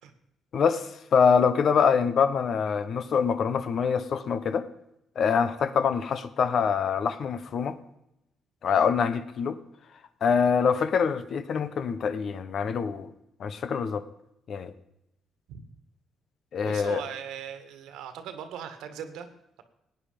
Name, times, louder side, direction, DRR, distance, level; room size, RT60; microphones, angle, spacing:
voice 1, 0.5-4.6 5.2-7.8 8.6-9.6 10.2-13.1 13.4-14.0 14.5-14.7 16.5-17.0, left 6 dB, 60° left, 1.0 m, -25 dB
voice 2, 16.6-19.3, right 8 dB, 90° right, 1.6 m, -39 dB
16.0 x 9.5 x 5.2 m
cardioid pair, 90°, 0 cm